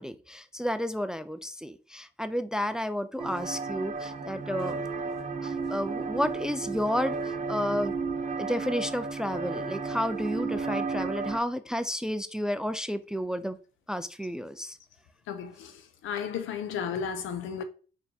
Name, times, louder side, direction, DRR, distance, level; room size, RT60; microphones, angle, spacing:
voice 1, 0.0-4.8 5.4-7.9 8.4-13.6 13.9-14.8, equal, 5° right, 0.3 m, -31 dB
sound 1, 3.2-11.4, right 4 dB, 40° right, 0.6 m, -33 dB
voice 2, 15.3-17.6, left 7 dB, 80° left, 0.6 m, -34 dB
4.2 x 3.4 x 2.7 m
cardioid pair, 90°, 20 cm